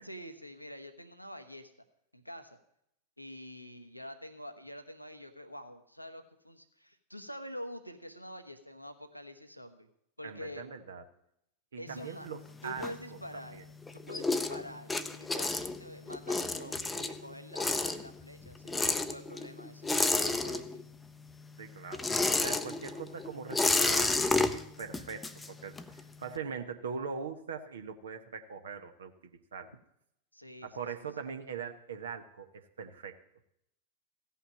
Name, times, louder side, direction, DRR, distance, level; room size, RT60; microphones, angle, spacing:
voice 1, 0.0-1.7 2.1-2.6 3.2-9.9 10.2-10.7 11.8-12.3 12.6-13.7 13.9-20.9 30.3-31.1, equal, 90° left, 8 dB, 1.0 m, -46 dB
voice 2, 10.2-11.0 11.7-13.2 13.5-13.6 21.6-29.1 29.5-29.7 30.6-33.2, right 6 dB, 65° right, 7 dB, 1.0 m, -41 dB
sound 1, 11.9-13.5 13.8-21.0 21.3-26.0, left 3 dB, 10° left, 0.7 m, -31 dB
15.5 x 5.7 x 8.5 m, 0.76 s
figure-of-eight pair, 90°, 0 cm